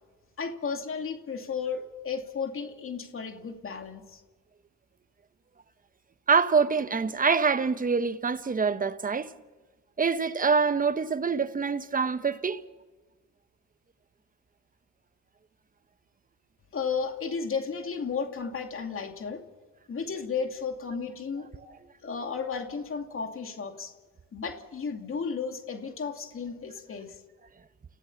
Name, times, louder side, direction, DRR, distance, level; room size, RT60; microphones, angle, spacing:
voice 1, 0.4-4.2 16.7-19.4 19.9-21.5 22.0-23.9 24.3-27.2, left 5 dB, 45° left, 2.5 m, -33 dB
voice 2, 6.3-9.3 10.0-12.6, right 5 dB, 30° right, 1.0 m, -25 dB
29.5 x 16.0 x 7.2 m
cardioid pair, 90°, 30 cm